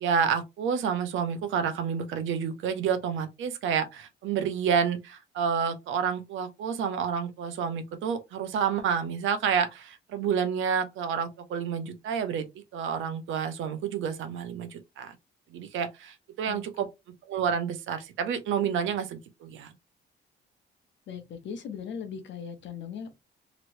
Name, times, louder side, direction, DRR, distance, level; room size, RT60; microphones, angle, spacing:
voice 1, 0.0-15.2 15.5-16.9 17.3-19.7, right 7 dB, 80° right, 0.6 m, -29 dB
voice 2, 21.1-23.2, left 7 dB, 70° left, 0.8 m, -38 dB
3.0 x 3.0 x 2.6 m
cardioid pair, 90°, 20 cm